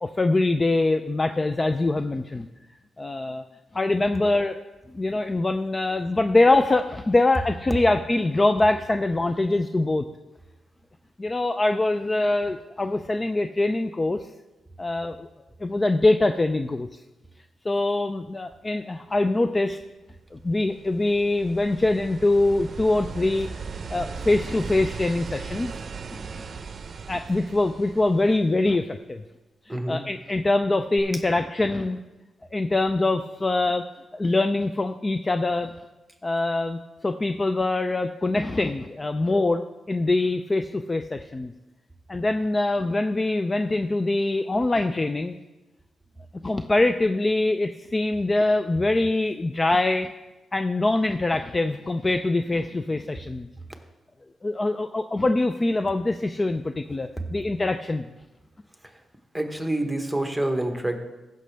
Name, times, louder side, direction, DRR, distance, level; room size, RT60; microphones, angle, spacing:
voice 1, 0.0-2.5 3.0-3.4 3.7-4.6 4.9-10.1 11.2-14.2 14.8-15.3 15.6-16.9 17.7-19.8 20.3-23.5 23.9-25.7 26.1-26.2 27.1-29.2 29.9-32.0 32.5-33.8 34.1-35.7 36.2-41.5 42.1-45.3 46.4-50.1 50.5-53.5 54.4-58.1, left 2 dB, 25° left, 8 dB, 0.4 m, -23 dB
sound 1, 20.3-28.8 31.0-31.1, right 5 dB, 50° right, 0.6 m, -38 dB
voice 2, 29.7-30.0 31.1-31.2 58.8-58.9 59.3-61.0, right 1 dB, 5° right, 5 dB, 1.2 m, -27 dB
15.5 x 6.5 x 3.4 m, 1.1 s
cardioid pair, 95°, 0 cm